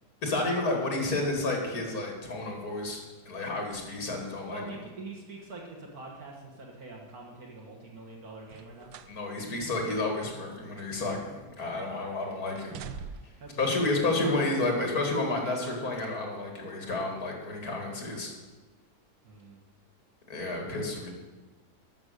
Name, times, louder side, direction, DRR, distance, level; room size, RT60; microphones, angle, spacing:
voice 1, 0.2-3.0 3.3-4.6 9.1-12.7 13.6-18.3 20.3-21.1, left 2 dB, 65° left, 1 dB, 2.7 m, -30 dB
voice 2, 4.5-8.9 13.4-13.6 14.0-14.8 19.2-19.6, right 2 dB, 65° right, -1 dB, 2.0 m, -44 dB
sound 1, 8.4-9.2 9.6-9.7 10.5-11.5 11.8-12.1 12.6-13.5 14.4-14.5, right 6 dB, 85° right, 1.2 m, -45 dB
12.0 x 6.3 x 6.6 m, 1.2 s
omnidirectional pair, 1.7 m